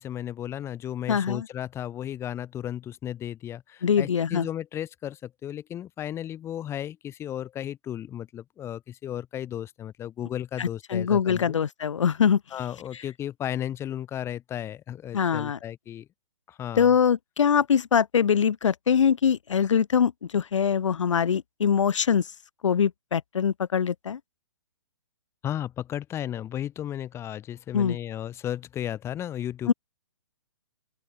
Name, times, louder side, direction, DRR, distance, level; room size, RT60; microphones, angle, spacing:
voice 1, 0.0-11.6 12.5-16.1 16.5-16.9 25.4-29.7, left 11 dB, 15° left, 4.8 m, -34 dB
voice 2, 1.1-1.5 3.8-4.5 10.6-12.4 15.1-15.6 16.8-22.3 22.6-24.2 27.7-28.0 29.7-29.8, left 7 dB, 80° left, 0.9 m, -23 dB
open air
hypercardioid pair, 150°, 16 cm